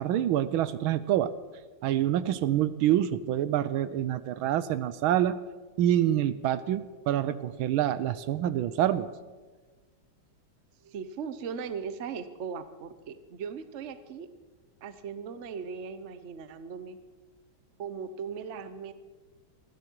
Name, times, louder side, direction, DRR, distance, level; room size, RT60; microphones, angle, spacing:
voice 1, 0.0-1.3 1.8-5.4 5.8-9.1, right 11 dB, 80° right, 15 dB, 1.5 m, -26 dB
voice 2, 10.8-14.3 14.8-17.0 17.8-18.9, right 6 dB, 50° right, 11 dB, 0.9 m, -38 dB
20.5 x 14.5 x 4.6 m, 1.3 s
omnidirectional pair, 2.3 m